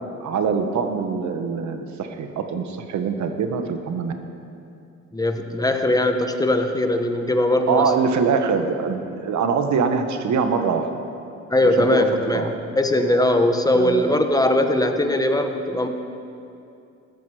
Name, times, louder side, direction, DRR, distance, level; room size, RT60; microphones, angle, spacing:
voice 1, 0.2-4.1 7.7-10.9 11.8-12.0 12.3-12.5 13.7-14.2, right 5 dB, 70° right, 7 dB, 1.3 m, -23 dB
voice 2, 5.1-7.9 11.5-15.9, left 1 dB, 10° left, 6 dB, 1.1 m, -20 dB
14.0 x 12.0 x 4.9 m, 2.6 s
cardioid pair, 90°, 30 cm